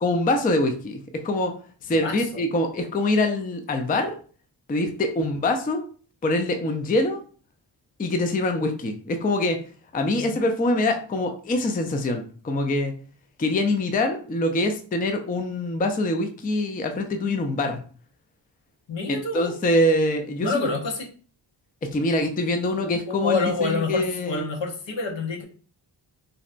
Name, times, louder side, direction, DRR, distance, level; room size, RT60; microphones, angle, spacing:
voice 1, 0.0-1.5 1.8-4.2 4.7-5.9 6.2-7.2 8.0-9.6 9.9-13.0 13.4-17.8 19.1-20.5 21.8-24.4, left 1 dB, 20° left, 6 dB, 0.4 m, -24 dB
voice 2, 2.0-2.4 10.1-10.5 18.9-19.6 20.4-21.1 22.7-25.4, left 3 dB, 75° left, 1 dB, 0.9 m, -28 dB
3.9 x 2.2 x 2.4 m, 0.41 s
wide cardioid pair, 80°, 45 cm